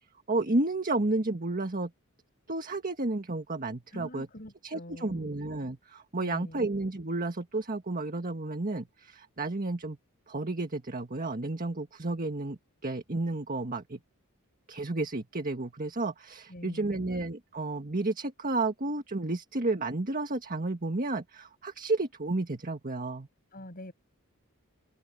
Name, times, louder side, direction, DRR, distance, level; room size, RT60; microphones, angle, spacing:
voice 1, 0.3-1.9 2.5-4.3 4.6-10.0 10.3-14.0 14.7-23.3, right 2 dB, 40° right, 1.6 m, -32 dB
voice 2, 3.9-5.3 6.2-6.6 16.5-17.1 23.5-23.9, left 1 dB, 40° left, 7.2 m, -45 dB
open air
head